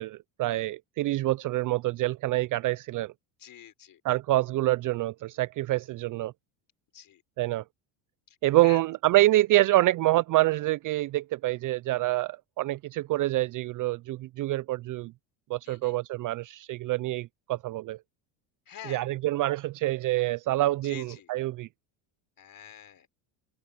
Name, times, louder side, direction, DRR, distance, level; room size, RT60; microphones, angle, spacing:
voice 1, 0.0-3.1 4.0-6.3 7.4-7.6 8.4-15.1 15.5-18.0 18.9-21.7, right 17 dB, 40° right, 0.4 m, -26 dB
voice 2, 3.4-4.0 6.9-7.2 8.3-8.4 8.6-8.8 15.6-15.9 18.7-19.0 20.8-21.3 22.4-23.1, left 10 dB, 40° left, 4.5 m, -46 dB
supercardioid pair, 105°, 49 cm